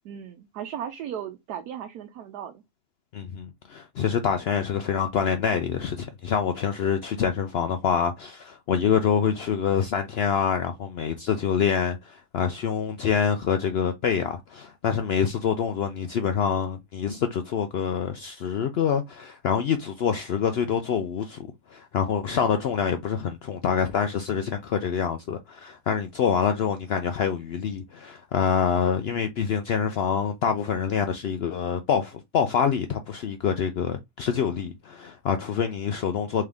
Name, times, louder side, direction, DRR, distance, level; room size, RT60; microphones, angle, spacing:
voice 1, 0.0-2.6, right 9 dB, 90° right, 1.2 m, -36 dB
voice 2, 3.1-36.4, left 7 dB, 90° left, 0.5 m, -26 dB
3.7 x 3.3 x 3.4 m
omnidirectional pair, 1.6 m